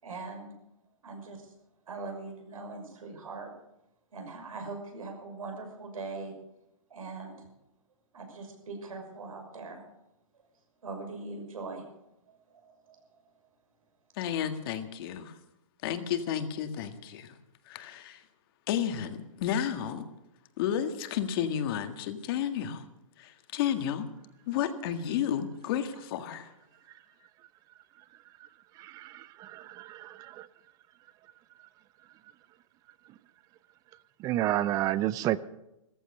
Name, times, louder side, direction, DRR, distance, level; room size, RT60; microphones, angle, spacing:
voice 1, 0.0-0.5 1.0-1.5 1.9-3.5 4.1-6.3 6.9-7.5 8.1-9.8 10.8-11.8 12.3-12.4 12.6-13.0, right 3 dB, 80° right, 6.2 m, -41 dB
voice 2, 14.2-15.4 15.8-17.4 17.7-18.2 18.7-20.1 20.6-22.8 23.2-24.1 24.5-26.5, left 9 dB, 45° left, 1.8 m, -32 dB
voice 3, 28.8-30.5 34.2-35.4, right 14 dB, 20° right, 0.5 m, -30 dB
15.0 x 14.5 x 6.6 m
hypercardioid pair, 145°, 18 cm